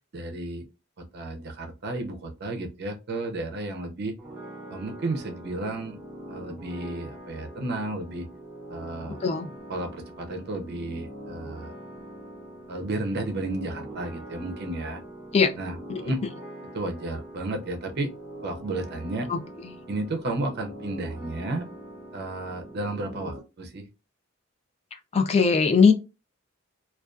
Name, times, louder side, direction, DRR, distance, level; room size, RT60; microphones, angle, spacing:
voice 1, 0.1-0.7 1.1-4.1 4.7-6.0 6.3-8.3 8.7-9.2 9.7-11.7 12.7-15.0 15.6-16.2 16.7-18.1 18.4-19.3 19.9-21.6 22.1-23.9, right 2 dB, 50° right, 0.5 m, -32 dB
sound 1, 4.2-23.4, right 1 dB, 10° right, 0.9 m, -43 dB
voice 2, 25.1-25.9, left 5 dB, 30° left, 0.3 m, -20 dB
2.4 x 2.3 x 2.2 m
head